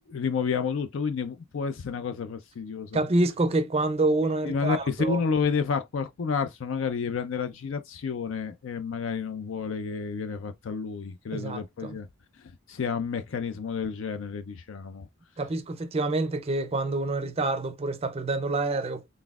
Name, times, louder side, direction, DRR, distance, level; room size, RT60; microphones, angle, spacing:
voice 1, 0.1-3.0 4.4-12.1 12.7-15.1, left 5 dB, 60° left, 0.4 m, -30 dB
voice 2, 2.9-5.2 11.3-12.0 15.4-19.1, right 2 dB, 30° right, 0.5 m, -27 dB
4.0 x 3.4 x 2.3 m
head